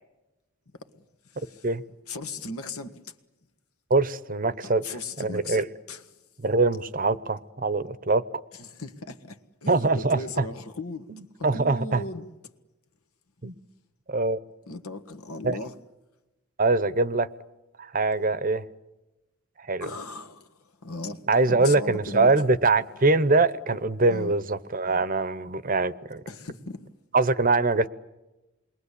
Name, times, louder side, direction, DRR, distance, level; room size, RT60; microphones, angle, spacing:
voice 1, 1.3-1.7 2.1-3.1 4.6-5.6 5.9-6.0 8.5-11.1 11.4-12.3 14.7-15.8 19.8-20.5 20.8-22.3 24.1-24.3 26.3-26.9, left 2 dB, 85° left, 1.7 m, -37 dB
voice 2, 3.9-4.8 5.2-5.6 6.4-8.2 9.7-10.4 11.1-12.0 13.4-13.5 14.1-14.4 15.4-15.6 16.6-17.3 17.8-18.6 19.6-19.9 21.3-26.2 27.1-27.9, right 3 dB, 40° right, 0.8 m, -23 dB
28.0 x 22.0 x 8.4 m
head